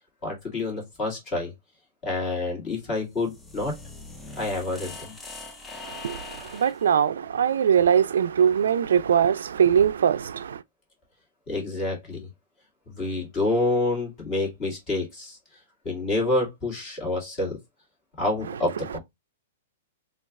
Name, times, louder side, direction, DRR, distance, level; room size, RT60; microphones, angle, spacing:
voice 1, 0.2-1.5 2.0-3.7 4.4-5.2 11.5-12.3 12.9-15.4 15.8-17.6 18.2-19.0, left 2 dB, 25° left, 1.8 m, -28 dB
sound 1, 3.0-6.9, left 3 dB, 10° left, 0.5 m, -42 dB
voice 2, 6.5-10.6, right 8 dB, 90° right, 0.3 m, -21 dB
3.1 x 2.4 x 3.5 m
hypercardioid pair, 160°, 0 cm